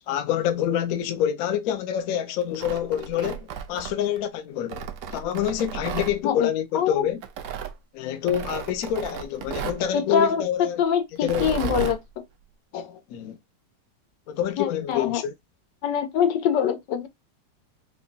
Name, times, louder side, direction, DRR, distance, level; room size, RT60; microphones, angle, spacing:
voice 1, 0.1-4.8 5.1-7.2 7.9-10.8 11.2-11.6 12.7-13.4 14.3-15.3, left 10 dB, 65° left, 0.9 m, -27 dB
Tearing, 2.4-4.2 4.7-6.1 7.2-7.7 8.3-9.8 11.2-12.0, right 8 dB, 75° right, 0.7 m, -34 dB
voice 2, 6.2-7.0 9.9-10.4 10.8-12.0 14.6-15.2 15.8-17.1, left 8 dB, 85° left, 1.4 m, -24 dB
4.8 x 2.2 x 2.6 m
omnidirectional pair, 1.9 m